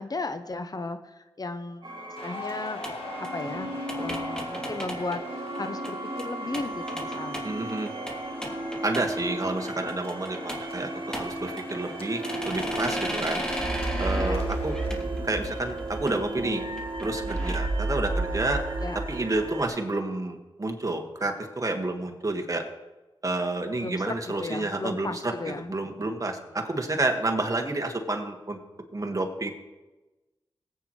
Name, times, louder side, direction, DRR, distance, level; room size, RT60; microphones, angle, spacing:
voice 1, 0.0-2.8 3.2-3.7 4.0-7.5 14.2-14.4 18.8-19.0 23.8-25.7, left 3 dB, 40° left, 9 dB, 0.8 m, -35 dB
sound 1, 1.8-19.7, right 2 dB, 55° right, 2.7 m, -33 dB
sound 2, 2.2-14.9, left 3 dB, 80° left, 1.6 m, -44 dB
sound 3, 2.8-5.9 6.2-6.3 6.5-9.2 9.5-10.8 11.1-11.9 12.2-17.6, equal, 5° left, 3.3 m, -36 dB
voice 2, 7.4-7.9 8.8-13.5 14.0-14.8 15.2-16.6 17.0-18.6 18.9-22.6 23.2-28.6 28.9-29.5, right 2 dB, 35° right, 4 dB, 1.9 m, -30 dB
18.5 x 9.0 x 3.2 m, 1.1 s
cardioid pair, 45°, 10 cm